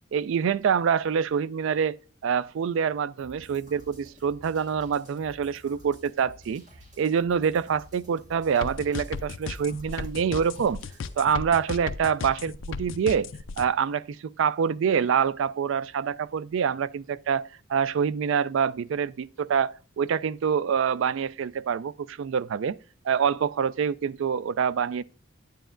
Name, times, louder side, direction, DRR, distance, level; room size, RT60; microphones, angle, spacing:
voice 1, 0.1-2.0 2.2-6.6 7.0-10.8 11.2-13.3 13.6-22.8 23.0-25.0, right 7 dB, 65° right, 0.3 m, -26 dB
sound 1, 3.2-11.2, equal, 35° right, 1.9 m, -52 dB
sound 2, 8.6-13.6, left 5 dB, 65° left, 0.5 m, -35 dB
9.1 x 9.0 x 2.5 m
head